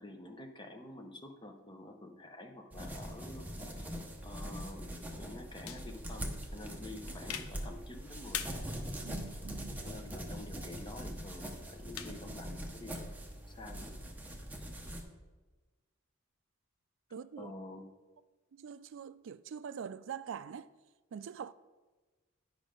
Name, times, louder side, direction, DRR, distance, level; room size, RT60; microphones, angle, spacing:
voice 1, 0.0-3.9 4.2-4.9 5.1-9.1 9.8-13.1 13.5-13.9 14.6-14.7 17.4-17.9, left 1 dB, 20° left, 0.8 m, -49 dB
sound 1, 2.7-15.0, equal, 10° right, 0.8 m, -42 dB
sound 2, 5.7-13.2, left 9 dB, 80° left, 0.6 m, -48 dB
voice 2, 9.0-9.8 17.1-17.5 18.6-20.7 21.1-21.5, right 7 dB, 60° right, 0.3 m, -44 dB
9.7 x 5.2 x 5.1 m
head